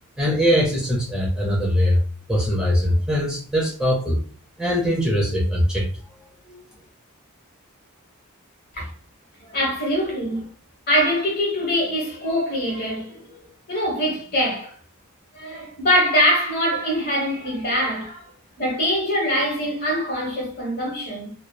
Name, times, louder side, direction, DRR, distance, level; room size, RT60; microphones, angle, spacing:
voice 1, 0.2-2.0 2.3-4.2 4.6-5.9 6.5-6.6, equal, 5° right, 0.5 m, -21 dB
voice 2, 9.4-10.5 10.9-13.4 13.7-14.7 15.3-18.3 18.6-21.3, equal, 50° left, 1.1 m, -23 dB
2.9 x 2.0 x 2.2 m
head